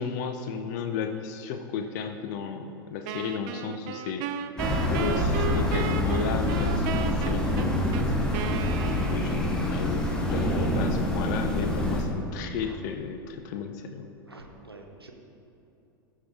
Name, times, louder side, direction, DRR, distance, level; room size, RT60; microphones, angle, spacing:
voice 1, 0.0-4.3 4.9-8.1 9.0-14.1, left 6 dB, 50° left, 7 dB, 0.5 m, -34 dB
Wind instrument woodwind instrument, 3.1-9.6, right 9 dB, 45° right, 0.5 m, -35 dB
sound 1, 4.6-12.0, left 1 dB, 5° left, 1.4 m, -26 dB
voice 2, 14.3-15.1, right 2 dB, 90° right, 2 dB, 0.8 m, -46 dB
14.0 x 5.5 x 3.5 m, 2.8 s
figure-of-eight pair, 85°, 13 cm